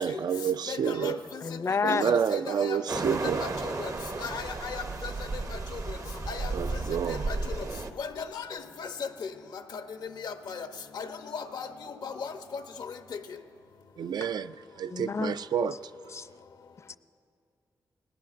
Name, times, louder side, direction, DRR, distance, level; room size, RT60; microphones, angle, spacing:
voice 1, 0.0-1.2 1.8-3.4 6.5-7.3 14.0-15.8, right 7 dB, 70° right, 0.3 m, -29 dB
voice 2, 0.7-1.4 1.9-2.8 3.4-3.9 4.2-5.1 5.5-5.6 6.3-6.5 7.1-7.5 8.0-8.9 9.7-9.8 10.2-10.7 10.9-11.1 11.3-11.7 12.0-12.6, left 6 dB, 80° left, 0.7 m, -37 dB
voice 3, 1.4-2.1 6.1-6.3 14.9-15.4 16.1-16.3, left 5 dB, 40° left, 0.4 m, -30 dB
sound 1, 2.9-7.9, right 3 dB, 50° right, 0.7 m, -33 dB
20.5 x 18.5 x 2.5 m
cardioid pair, 60°, 7 cm